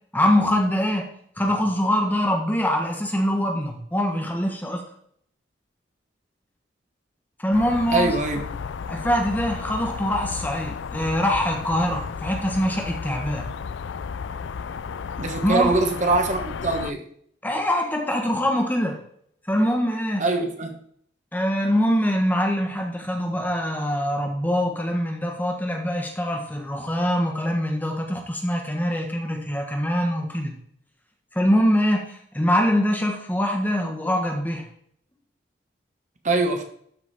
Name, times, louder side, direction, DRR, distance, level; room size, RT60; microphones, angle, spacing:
voice 1, 0.1-1.1 1.4-4.8 7.4-8.1 8.9-13.5 15.4-15.7 17.4-19.0 19.5-20.2 21.3-30.5 31.3-34.7, equal, 10° left, 1.3 m, -23 dB
sound 1, 7.5-16.9, left 6 dB, 75° left, 0.4 m, -33 dB
voice 2, 7.9-8.5 15.2-17.0 20.2-20.8 36.2-36.6, right 3 dB, 40° right, 1.2 m, -23 dB
12.5 x 5.4 x 4.2 m
head